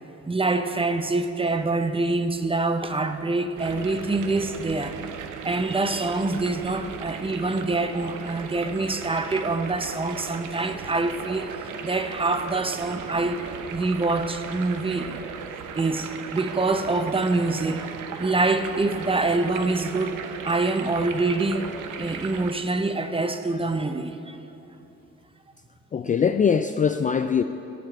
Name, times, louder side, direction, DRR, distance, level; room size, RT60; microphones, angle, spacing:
voice 1, 0.1-5.0 5.4-11.5 11.8-15.2 15.8-24.4, right 3 dB, 20° right, 8 dB, 0.7 m, -25 dB
sound 1, 3.6-22.5, right 7 dB, 80° right, 0.8 m, -37 dB
voice 2, 25.9-27.4, left 6 dB, 25° left, 8 dB, 0.4 m, -22 dB
13.5 x 5.7 x 8.7 m, 2.8 s
cardioid pair, 90°, 30 cm